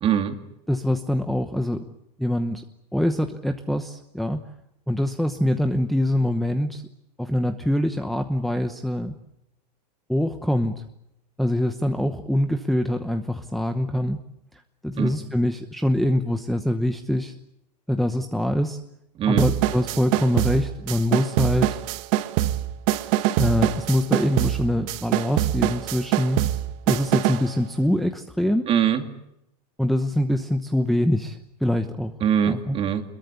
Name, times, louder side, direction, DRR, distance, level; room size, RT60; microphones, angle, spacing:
voice 1, 0.0-0.4 15.0-15.1 19.2-19.5 28.7-29.0 32.2-33.0, right 8 dB, 25° right, 6 dB, 2.3 m, -22 dB
voice 2, 0.7-1.9 2.2-2.6 2.9-4.4 4.9-6.8 7.2-9.1 10.1-10.8 11.4-14.2 14.8-17.3 17.9-18.8 19.3-21.8 23.0-26.5 26.9-28.7 29.8-32.1 32.4-32.8, left 1 dB, ahead, 5 dB, 1.0 m, -24 dB
sound 1, 19.4-27.5, right 14 dB, 50° right, 1.4 m, -24 dB
25.0 x 22.0 x 8.4 m, 0.83 s
supercardioid pair, 140°, 21 cm